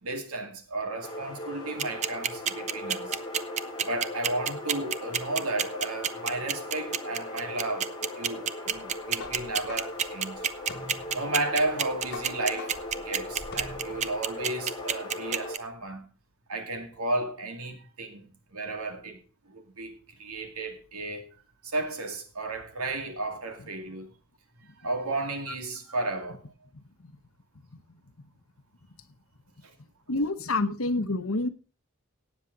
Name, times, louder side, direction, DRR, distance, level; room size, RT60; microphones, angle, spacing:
voice 1, 0.0-3.2 3.8-10.3 11.1-16.0 16.5-21.3 21.6-24.1 24.8-26.5 29.6-29.7, right 2 dB, 85° right, 2.4 m, -33 dB
sound 1, 1.0-15.6, left 1 dB, 20° left, 3.3 m, -39 dB
sound 2, 1.8-15.6, right 8 dB, 30° right, 0.6 m, -27 dB
sound 3, 8.8-14.2, left 2 dB, 50° left, 2.0 m, -44 dB
voice 2, 30.1-31.5, left 2 dB, 70° left, 1.1 m, -27 dB
17.5 x 7.4 x 4.0 m
head